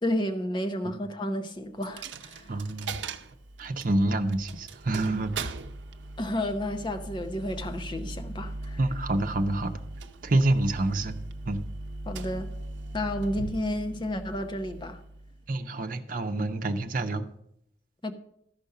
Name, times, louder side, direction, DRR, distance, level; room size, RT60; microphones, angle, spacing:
voice 1, 0.0-2.6 6.2-8.8 12.1-12.5 12.9-15.0 18.0-18.1, left 1 dB, 25° left, 0.8 m, -31 dB
Coin (dropping), 1.8-15.6, right 2 dB, 90° right, 0.7 m, -39 dB
voice 2, 2.5-3.0 3.6-5.5 8.8-9.7 10.2-11.2 11.5-11.6 15.5-17.3, right 2 dB, 50° right, 0.8 m, -27 dB
14.0 x 5.2 x 5.6 m
head